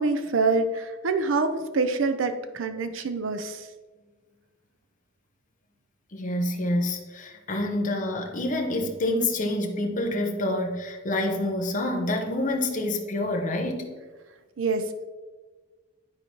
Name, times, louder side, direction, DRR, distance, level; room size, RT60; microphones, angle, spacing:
voice 1, 0.0-3.7 14.6-15.0, right 3 dB, 70° right, 9 dB, 0.5 m, -26 dB
voice 2, 6.1-13.9, left 1 dB, 40° left, 2 dB, 0.9 m, -27 dB
11.5 x 4.2 x 3.0 m, 1.3 s
head